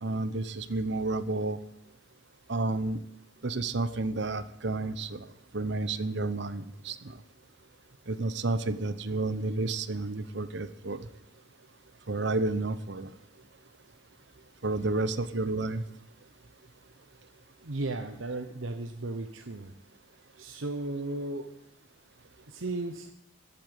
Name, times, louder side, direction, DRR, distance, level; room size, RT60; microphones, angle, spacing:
voice 1, 0.0-1.6 2.5-3.0 3.4-5.3 5.5-7.2 8.1-11.1 12.1-13.1 14.6-15.8, right 2 dB, 60° right, 13 dB, 0.9 m, -31 dB
voice 2, 17.6-19.7 20.4-21.6 22.5-23.1, right 2 dB, 85° right, 6 dB, 1.0 m, -35 dB
14.0 x 8.7 x 9.1 m, 0.80 s
head